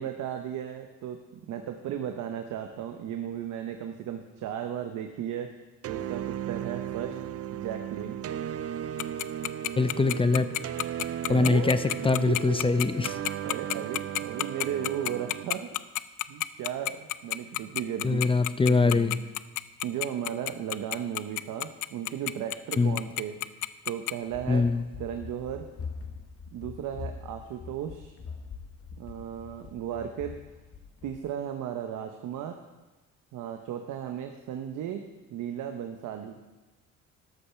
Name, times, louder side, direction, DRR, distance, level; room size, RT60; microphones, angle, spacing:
voice 1, 0.0-5.5 5.9-7.2 7.5-8.1 11.0-12.6 13.4-15.7 16.3-18.3 18.6-19.1 19.8-23.4 23.8-24.7 25.0-25.7 26.5-28.1 29.0-30.3 31.0-32.6 33.3-35.0 35.3-36.4, right 9 dB, 80° right, 5 dB, 0.9 m, -35 dB
sound 1, 5.8-15.4, right 11 dB, 50° right, 0.5 m, -36 dB
Tick-tock, 9.0-24.1, left 17 dB, 80° left, 0.5 m, -29 dB
voice 2, 9.8-10.5 11.3-11.8 12.0-13.2 18.0-19.2 22.8-23.0 24.5-24.8, left 3 dB, 20° left, 12 dB, 0.5 m, -23 dB
Run, 24.3-31.3, left 5 dB, 50° left, 1.4 m, -43 dB
12.5 x 6.9 x 5.7 m, 1.2 s
cardioid pair, 90°, 30 cm